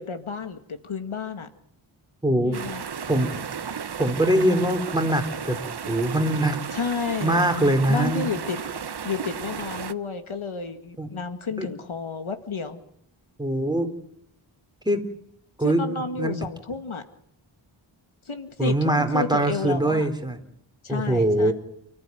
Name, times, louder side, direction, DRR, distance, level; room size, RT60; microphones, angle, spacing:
voice 1, 0.0-1.5 2.4-2.9 6.7-7.5 7.9-8.6 9.0-12.8 15.6-17.0 18.3-20.1 20.8-21.5, left 5 dB, 75° left, 8 dB, 2.1 m, -31 dB
voice 2, 2.2-2.6 3.1-3.3 4.0-5.6 5.9-6.6 7.2-8.3 11.0-11.1 11.6-11.7 13.4-13.9 14.9-15.1 15.6-16.3 18.6-20.4 20.9-21.5, right 1 dB, 10° right, 5 dB, 3.6 m, -22 dB
sound 1, 2.5-9.9, right 7 dB, 55° right, 0.9 m, -34 dB
29.0 x 14.5 x 9.3 m, 0.75 s
wide cardioid pair, 90°, 49 cm